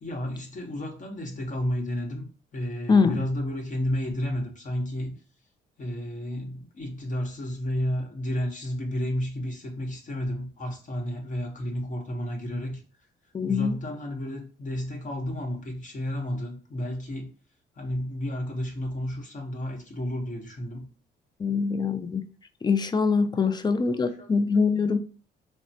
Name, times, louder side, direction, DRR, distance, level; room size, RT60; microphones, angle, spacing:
voice 1, 0.0-5.2 5.8-12.8 13.4-17.3 17.7-20.9 23.5-24.5, left 1 dB, 40° left, 0.9 m, -32 dB
voice 2, 2.9-3.2 13.3-13.8 21.4-22.2 22.6-25.0, left 5 dB, 20° left, 0.3 m, -23 dB
3.1 x 2.1 x 2.7 m
cardioid pair, 90°, 20 cm